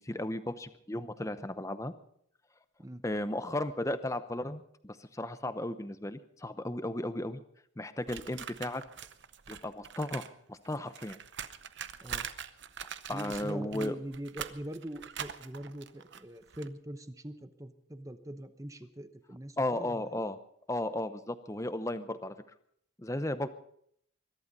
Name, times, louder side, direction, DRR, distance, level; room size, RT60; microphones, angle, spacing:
voice 1, 0.0-1.9 3.0-7.4 7.8-8.8 9.5-10.2 10.5-11.2 13.1-14.0 19.6-20.4 20.7-22.4 23.0-23.5, left 1 dB, 15° left, 12 dB, 0.7 m, -35 dB
sound 1, 8.1-10.3 10.6-16.7, right 8 dB, 55° right, 0.8 m, -43 dB
voice 2, 13.1-20.2, right 1 dB, 15° right, 11 dB, 0.9 m, -42 dB
22.0 x 11.5 x 5.4 m, 0.68 s
head